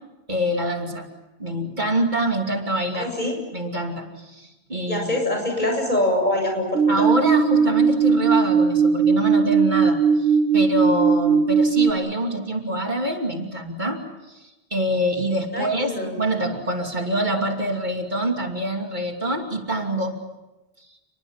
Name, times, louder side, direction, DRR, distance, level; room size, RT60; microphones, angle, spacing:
voice 1, 0.3-1.1 1.4-3.1 3.5-5.2 6.9-14.0 14.3-15.9 16.2-20.2, right 1 dB, 50° right, 3 dB, 2.9 m, -25 dB
voice 2, 2.9-3.3 4.9-7.0 15.5-16.1, left 1 dB, 45° left, 2 dB, 7.9 m, -24 dB
sound 1, 6.7-11.9, right 5 dB, 75° right, 1.6 m, -18 dB
30.0 x 22.0 x 7.3 m, 1.0 s
omnidirectional pair, 1.0 m